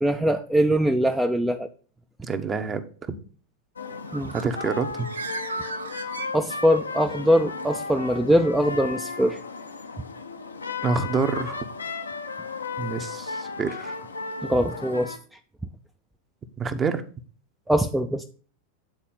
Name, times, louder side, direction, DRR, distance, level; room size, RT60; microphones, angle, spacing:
voice 1, 0.0-1.7 4.1-4.3 6.3-9.4 14.4-15.2 17.7-18.2, equal, 5° right, 5 dB, 0.5 m, -22 dB
voice 2, 2.2-2.8 3.1-3.2 4.3-5.1 10.8-11.6 12.8-14.0 16.6-17.0, right 5 dB, 20° right, 10 dB, 0.9 m, -27 dB
sound 1, 3.8-15.2, left 4 dB, 75° left, 0.8 m, -35 dB
Bird, 3.9-6.9, right 4 dB, 70° right, 0.6 m, -37 dB
8.9 x 4.2 x 5.6 m, 0.40 s
figure-of-eight pair, 90°, 0 cm